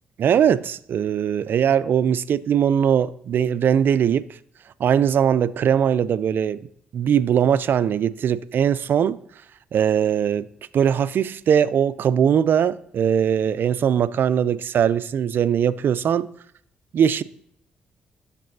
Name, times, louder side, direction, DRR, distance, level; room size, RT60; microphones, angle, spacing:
voice 1, 0.2-4.3 4.8-6.7 6.9-9.2 9.7-10.5 10.7-16.3 16.9-17.2, right 8 dB, 65° right, 0.4 m, -20 dB
10.5 x 6.7 x 2.7 m
hypercardioid pair, 50°, 4 cm